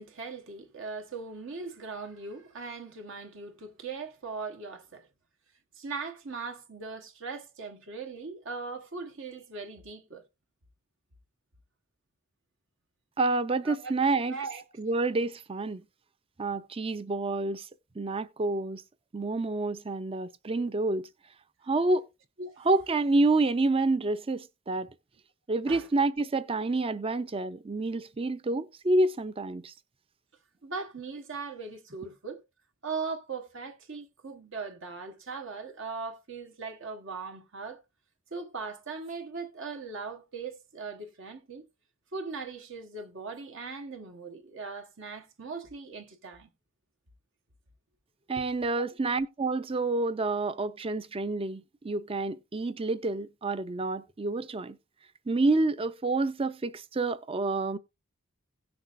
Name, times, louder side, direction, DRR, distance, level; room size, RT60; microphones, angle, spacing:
voice 1, 0.0-5.1 5.8-10.3 13.6-13.9 14.3-14.6 22.4-22.7 25.7-25.9 30.6-32.4 32.8-37.8 38.3-41.7 42.1-46.5 48.4-48.5 48.7-48.9, right 4 dB, 65° right, 1.2 m, -39 dB
voice 2, 13.2-14.4 14.8-15.8 16.4-17.7 18.0-18.8 19.1-21.1 21.7-22.1 22.6-24.9 25.5-29.7 48.3-54.8 55.3-57.8, right 2 dB, 25° right, 0.5 m, -28 dB
17.0 x 6.1 x 2.5 m
head